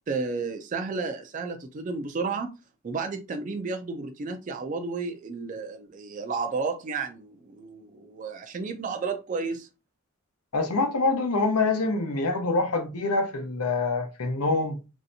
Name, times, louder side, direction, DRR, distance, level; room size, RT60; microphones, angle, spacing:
voice 1, 0.1-2.5 2.8-9.7, right 4 dB, 35° right, 0.3 m, -32 dB
voice 2, 10.5-14.8, left 3 dB, 90° left, 0.7 m, -25 dB
3.2 x 2.7 x 2.6 m
head